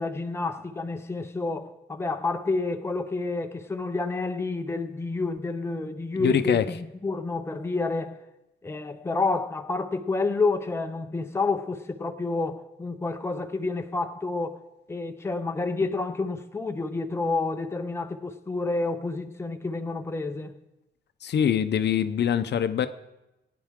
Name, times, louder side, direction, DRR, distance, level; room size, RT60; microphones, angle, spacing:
voice 1, 0.0-8.2 8.6-14.6 14.9-20.6, left 3 dB, 15° left, 0.6 m, -29 dB
voice 2, 6.2-6.6 21.2-22.9, left 9 dB, 65° left, 0.7 m, -24 dB
21.0 x 9.4 x 3.7 m
wide cardioid pair, 150°, 19 cm